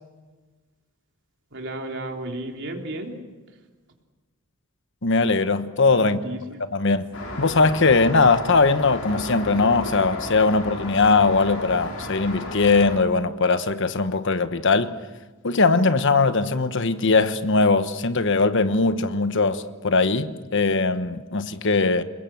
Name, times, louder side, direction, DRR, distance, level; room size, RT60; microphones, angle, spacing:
voice 1, 1.5-3.1 5.9-6.4, right 1 dB, 60° right, 3.6 m, -33 dB
voice 2, 5.0-6.2 6.7-7.1 7.4-14.9 15.4-22.0, left 3 dB, 60° left, 1.2 m, -20 dB
Traffic noise roadway noise, 7.1-13.0, left 2 dB, 75° left, 5.8 m, -34 dB
28.5 x 21.0 x 7.8 m
head